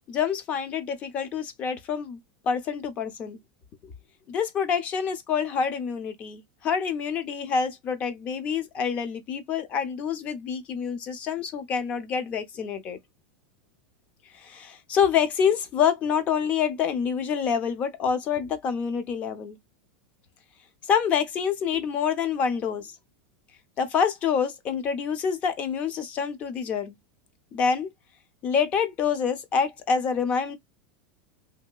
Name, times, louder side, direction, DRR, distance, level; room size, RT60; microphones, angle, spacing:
voice 1, 0.1-2.2 2.4-3.4 4.3-13.0 14.3-19.6 20.8-22.9 23.8-26.9 27.5-27.9 28.4-30.6, left 7 dB, 25° left, 0.5 m, -27 dB
2.9 x 2.7 x 2.2 m
supercardioid pair, 170°, 6 cm